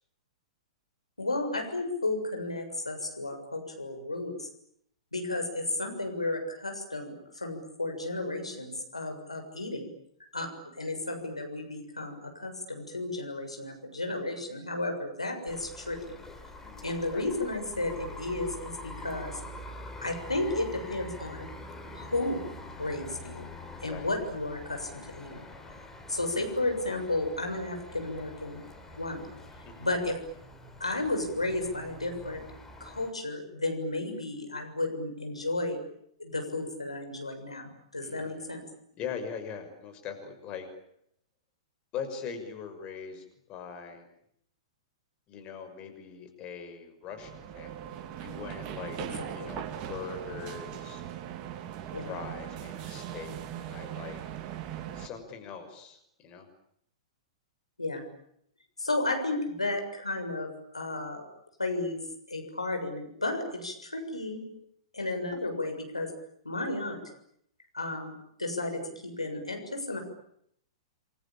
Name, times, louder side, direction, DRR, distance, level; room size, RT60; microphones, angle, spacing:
voice 1, 1.2-4.5 5.1-9.9 10.3-10.5 10.8-16.2 16.8-19.4 20.0-21.5 22.0-22.4 22.8-23.4 23.8-25.4 26.1-28.6 29.0-29.3 29.8-30.2 30.8-32.4 32.8-35.8 36.2-38.6 49.0-49.6 51.9-52.1 57.8-58.1 58.8-61.2 61.6-62.0 62.3-64.4 64.9-66.1 66.5-67.0 67.7-68.1 68.4-70.0, left 2 dB, 85° left, 4 dB, 6.9 m, -33 dB
sound 1, 15.5-33.1, left 1 dB, 10° left, 4.3 m, -45 dB
voice 2, 16.6-17.3 23.8-24.1 29.6-29.9 38.0-38.6 39.0-40.7 41.9-43.2 43.5-44.1 45.3-49.0 49.3-51.0 52.0-54.2 54.9-56.5, left 6 dB, 30° left, 6 dB, 6.2 m, -41 dB
sound 2, 47.1-55.1, right 10 dB, 35° right, 2.8 m, -40 dB
29.0 x 23.5 x 8.8 m, 0.72 s
figure-of-eight pair, 105°, 3 cm